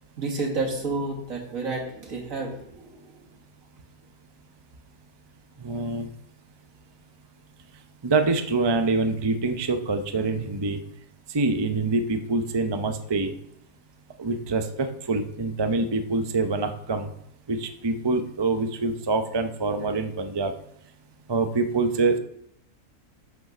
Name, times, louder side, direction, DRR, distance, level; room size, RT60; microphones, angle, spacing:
voice 1, 0.2-3.1, right 3 dB, 60° right, 0 dB, 2.2 m, -30 dB
voice 2, 5.6-6.1 8.0-10.8 11.3-13.3 14.2-17.1 17.5-20.5 21.3-22.2, right 3 dB, 35° right, 7 dB, 0.4 m, -25 dB
7.3 x 6.5 x 6.0 m, 0.74 s
omnidirectional pair, 1.6 m